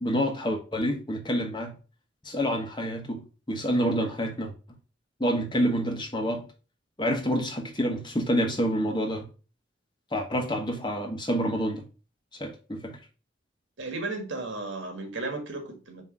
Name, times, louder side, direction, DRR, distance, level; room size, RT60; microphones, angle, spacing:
voice 1, 0.0-1.7 2.2-4.5 5.2-6.5 7.0-9.3 10.1-11.8 12.4-13.0, equal, 25° left, 1.2 m, -28 dB
voice 2, 13.8-16.0, right 3 dB, 80° right, 1.7 m, -34 dB
6.0 x 3.0 x 5.3 m
head